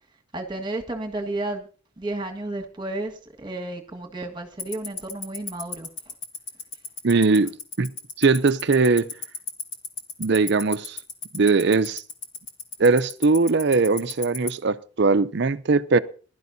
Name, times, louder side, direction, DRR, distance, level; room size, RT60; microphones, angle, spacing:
voice 1, 0.3-1.7 2.0-5.9, right 2 dB, 20° right, 1.6 m, -32 dB
Tick-tock, 4.6-14.5, left 6 dB, 60° left, 2.2 m, -31 dB
voice 2, 7.0-7.9 8.2-9.1 10.2-11.0 11.3-12.0 12.8-16.0, right 4 dB, 50° right, 0.5 m, -20 dB
21.5 x 12.0 x 2.7 m
head